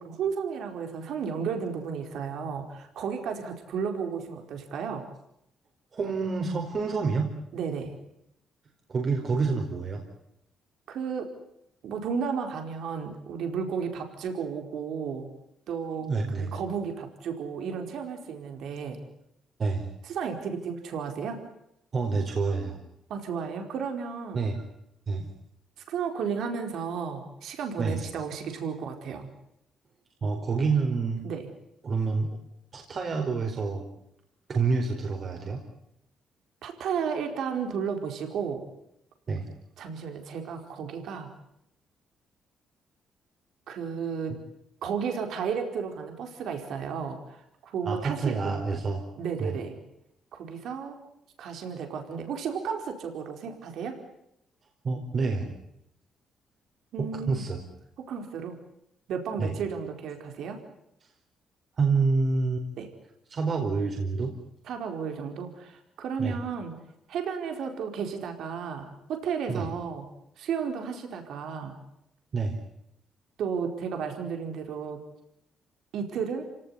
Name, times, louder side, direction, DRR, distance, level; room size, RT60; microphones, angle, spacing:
voice 1, 0.0-5.1 7.5-7.9 10.9-11.3 11.8-15.3 15.7-16.1 16.4-19.0 20.0-21.4 23.1-24.4 25.9-29.3 31.2-31.5 36.6-38.6 39.8-41.3 43.7-44.3 44.8-48.3 49.2-49.7 50.3-51.0 51.4-54.0 56.9-57.4 58.1-58.5 59.1-60.6 62.8-62.9 64.7-66.8 67.1-70.0 70.4-71.8 73.4-75.0 75.9-76.4, right 6 dB, 75° right, 5 dB, 4.6 m, -33 dB
voice 2, 5.9-7.3 8.9-10.0 16.0-16.5 19.6-19.9 21.9-22.8 24.3-24.6 25.1-25.3 27.8-28.1 30.2-31.2 31.8-32.4 32.7-33.8 34.5-35.6 39.3-39.5 47.8-49.0 49.4-49.5 54.8-55.5 57.0-57.6 59.4-59.6 61.8-62.7 63.3-64.3 66.2-66.4 69.5-69.7 72.3-72.6, right 4 dB, 45° right, 2 dB, 4.6 m, -28 dB
28.0 x 18.0 x 9.7 m, 0.80 s
cardioid pair, 90°, 0 cm